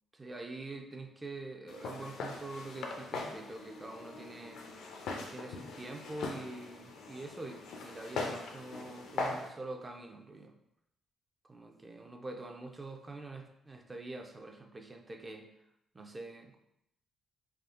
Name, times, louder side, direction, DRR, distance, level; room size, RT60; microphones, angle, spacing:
voice 1, 0.1-4.6 5.3-10.6 11.5-15.5 15.9-16.6, right 2 dB, 25° right, 4 dB, 0.4 m, -45 dB
Walk footsteps, 1.7-9.5, left 3 dB, 80° left, 0.4 m, -41 dB
3.4 x 2.1 x 2.4 m, 0.80 s
cardioid pair, 90°, 0 cm